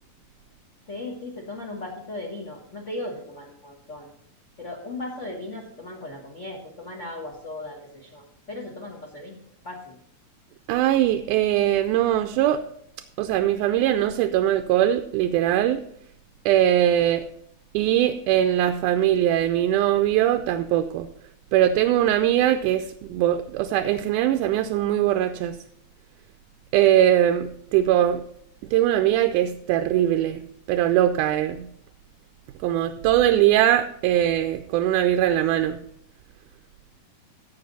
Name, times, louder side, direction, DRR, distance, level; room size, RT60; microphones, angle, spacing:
voice 1, 0.9-4.1 4.6-10.0, left 2 dB, 60° left, 0 dB, 0.7 m, -37 dB
voice 2, 10.7-12.6 13.2-15.8 16.5-17.3 17.7-21.1 21.5-25.6 26.7-28.2 28.7-30.4 30.7-31.7 32.6-35.8, right 12 dB, 80° right, 8 dB, 2.0 m, -21 dB
15.5 x 5.8 x 4.1 m, 0.71 s
omnidirectional pair, 3.7 m